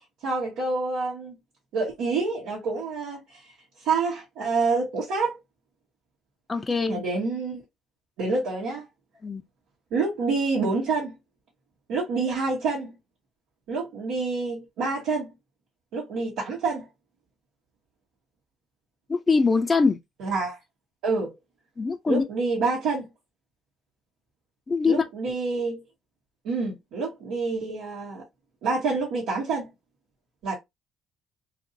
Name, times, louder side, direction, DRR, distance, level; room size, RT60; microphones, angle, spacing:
voice 1, 0.2-1.3 1.7-3.4 3.8-5.4 6.9-7.6 8.2-8.9 9.9-11.1 11.9-12.9 13.7-15.3 15.9-16.9 20.2-20.6 21.0-21.3 22.1-23.1 24.8-25.8 26.4-28.2 28.6-29.7 30.4-30.6, right 4 dB, 75° right, 1.1 m, -27 dB
voice 2, 6.5-7.0 9.2-9.4 19.1-20.0 21.8-22.2 24.7-25.0, left 4 dB, 30° left, 0.4 m, -23 dB
2.8 x 2.5 x 2.6 m
hypercardioid pair, 60°, 0 cm